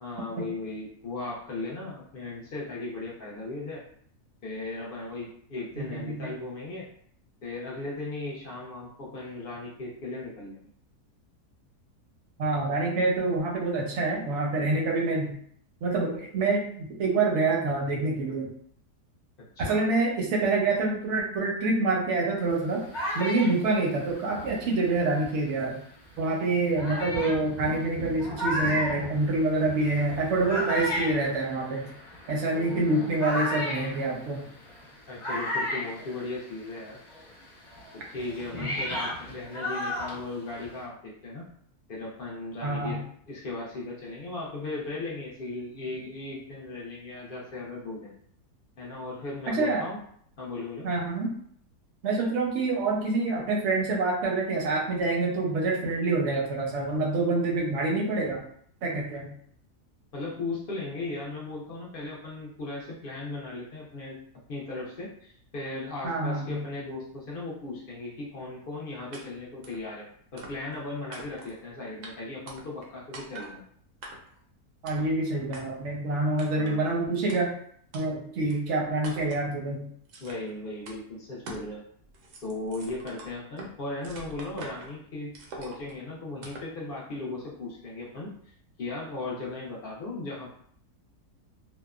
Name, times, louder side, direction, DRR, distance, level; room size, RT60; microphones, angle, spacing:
voice 1, 0.0-3.8 4.4-6.9 7.4-10.6 19.6-19.8 32.5-33.1 35.1-37.0 37.9-41.4 41.9-43.0 43.3-48.1 48.8-50.0 50.4-50.9 60.1-64.2 64.5-70.1 70.3-73.6 76.5-76.8 80.2-81.8 82.4-88.3 88.8-90.5, left 2 dB, 65° left, -4 dB, 0.5 m, -37 dB
voice 2, 5.8-6.3 12.4-15.3 15.8-18.5 19.6-22.8 23.1-25.8 26.2-31.9 32.3-34.4 38.6-38.7 42.6-43.0 49.5-49.9 50.8-51.3 52.0-58.4 58.8-59.3 66.0-66.6 74.8-77.5 77.9-79.8, right 2 dB, 60° right, -1 dB, 0.8 m, -26 dB
sound 1, 22.5-25.5 26.2-26.3 26.8-36.8 37.1-40.8, equal, 40° left, 1.1 m, -34 dB
sound 2, 69.1-69.2 69.6-69.8 70.4-70.8 71.1-71.6 72.0-72.1 72.5-72.9 73.1-73.5 74.0-74.4 74.9-75.1 75.5-75.6 76.4-76.8 77.3-77.4 77.9-78.0 78.5-78.6 79.0-79.4 80.1-80.5 80.9-81.0 81.5-81.7 82.0-83.7 84.0-84.9 85.3-85.9 86.4-86.7, right 2 dB, 85° right, 1.1 m, -44 dB
2.8 x 2.1 x 2.3 m, 0.63 s
omnidirectional pair, 1.7 m